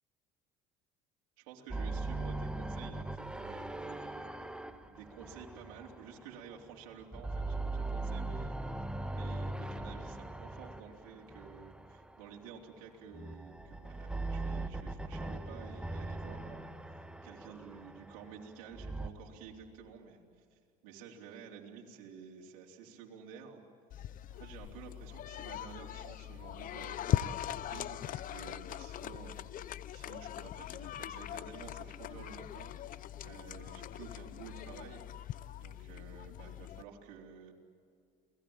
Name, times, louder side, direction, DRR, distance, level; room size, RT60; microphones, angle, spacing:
voice 1, 1.4-4.2 4.9-8.5 9.1-20.2 20.5-23.6 24.3-35.1 35.6-37.5, right 7 dB, 85° right, -1 dB, 3.8 m, -51 dB
sound 1, 1.7-6.7 7.0-12.3 13.1-19.1, right 2 dB, 5° right, 1.5 m, -40 dB
sound 2, 23.9-36.8, left 12 dB, 50° left, 0.8 m, -40 dB
29.5 x 20.0 x 8.9 m, 2.3 s
supercardioid pair, 95°, 18 cm